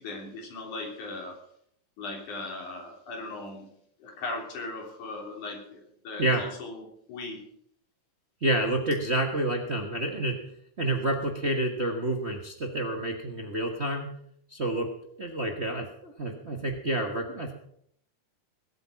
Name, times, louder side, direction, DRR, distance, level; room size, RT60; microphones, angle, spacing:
voice 1, 0.0-1.4 2.0-3.7 4.0-7.4, left 2 dB, 80° left, 1 dB, 4.8 m, -38 dB
voice 2, 8.4-10.4 10.8-14.1 14.5-14.9 15.2-17.5, right 1 dB, 45° right, 3 dB, 0.8 m, -28 dB
21.0 x 8.6 x 5.8 m, 0.69 s
omnidirectional pair, 3.5 m